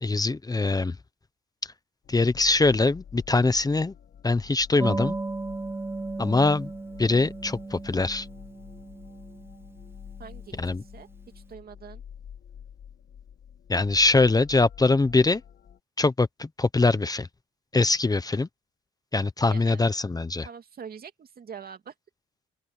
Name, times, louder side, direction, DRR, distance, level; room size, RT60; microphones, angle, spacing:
voice 1, 0.0-1.0 1.6-1.7 2.1-3.9 4.2-5.1 6.2-6.7 7.0-8.3 10.6-10.8 13.7-15.4 16.0-17.3 17.7-18.5 19.1-20.5, left 3 dB, 20° left, 0.9 m, -23 dB
sound 1, 2.0-15.8, left 8 dB, 55° left, 1.7 m, -48 dB
sound 2, 4.8-11.0, right 3 dB, 10° right, 0.5 m, -36 dB
voice 2, 10.2-11.1 11.3-12.0 19.5-19.8 20.4-21.9, right 7 dB, 50° right, 2.6 m, -44 dB
open air
cardioid pair, 90°, 20 cm